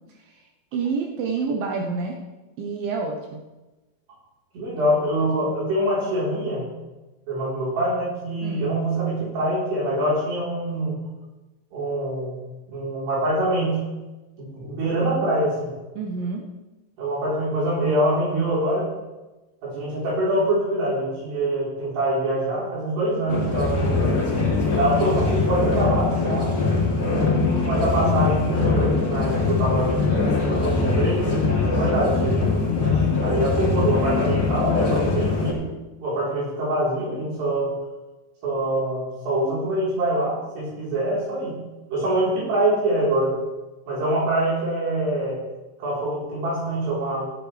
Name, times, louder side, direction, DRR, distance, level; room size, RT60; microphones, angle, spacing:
voice 1, 0.7-2.2 2.6-3.4 4.8-5.5 8.4-8.6 16.0-16.4 30.1-30.4 33.6-34.0, right 4 dB, 85° right, 1 dB, 2.0 m, -29 dB
voice 2, 4.5-6.6 7.3-11.0 11.7-12.4 12.7-13.8 14.4-15.7 17.0-18.9 19.6-24.1 24.8-26.5 27.1-29.9 30.4-32.4 33.2-35.7 36.0-37.7 38.4-41.6 41.9-43.3 43.9-45.4 45.8-47.3, right 1 dB, 60° right, -7 dB, 6.0 m, -24 dB
sound 1, 23.3-35.5, left 4 dB, 25° left, 2.5 m, -22 dB
16.5 x 9.7 x 3.4 m, 1.1 s
omnidirectional pair, 5.6 m